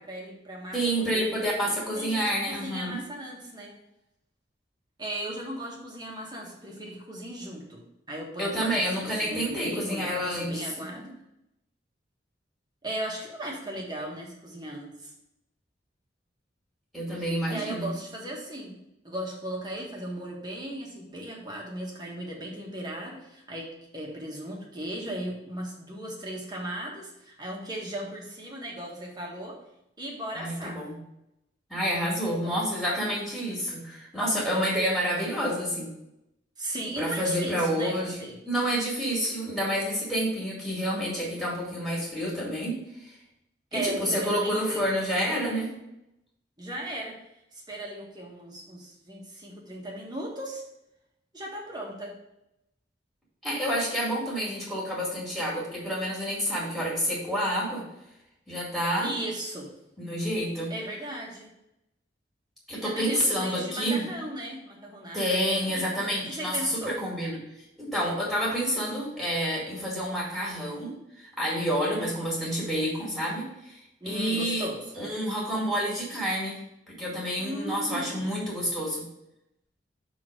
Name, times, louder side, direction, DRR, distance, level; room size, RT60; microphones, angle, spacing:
voice 1, 0.0-3.8 5.0-7.8 8.1-11.2 12.8-15.1 17.2-29.6 30.0-30.8 32.3-32.6 36.6-38.4 43.7-44.9 46.6-47.2 47.5-50.6 51.3-52.2 59.0-59.7 60.7-61.5 62.7-67.0 71.9-72.1 74.0-74.8 77.4-78.3, right 1 dB, 25° right, -2 dB, 1.5 m, -37 dB
voice 2, 0.7-3.0 8.4-10.6 16.9-17.9 30.3-31.0 31.7-35.9 37.0-43.1 43.7-45.7 53.4-57.8 58.5-59.1 60.0-60.7 62.7-64.0 65.1-67.4 67.8-70.9 71.2-73.8 74.1-74.7 74.9-76.6 76.9-79.0, equal, ahead, -5 dB, 2.2 m, -29 dB
6.2 x 3.8 x 6.1 m, 0.85 s
head